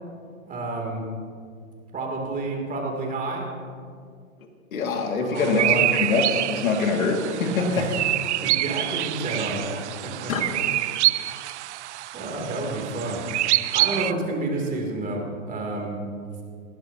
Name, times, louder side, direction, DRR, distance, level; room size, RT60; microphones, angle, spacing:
voice 1, 0.5-1.1 1.9-3.5 5.2-6.2 7.5-8.0 8.4-10.3 11.1-11.5 12.1-13.2 13.7-16.0, right 2 dB, 20° right, 0 dB, 3.0 m, -30 dB
voice 2, 4.7-7.9 10.3-10.4, left 4 dB, 75° left, 2 dB, 2.4 m, -24 dB
sound 1, 5.4-14.1, right 15 dB, 55° right, 0.6 m, -26 dB
20.0 x 15.5 x 2.9 m, 2.1 s
hypercardioid pair, 120°, 42 cm